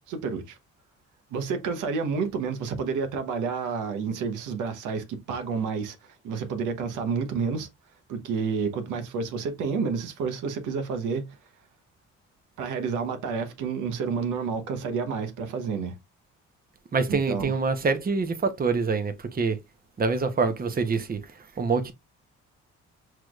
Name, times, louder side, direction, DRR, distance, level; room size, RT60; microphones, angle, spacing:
voice 1, 0.1-0.6 1.3-7.7 8.1-11.3 12.6-16.0 17.1-17.5, right 5 dB, 90° right, 1.0 m, -30 dB
voice 2, 16.9-19.6 20.0-21.2 21.6-21.9, right 4 dB, 30° right, 0.9 m, -25 dB
5.9 x 3.3 x 2.4 m
cardioid pair, 90°, 30 cm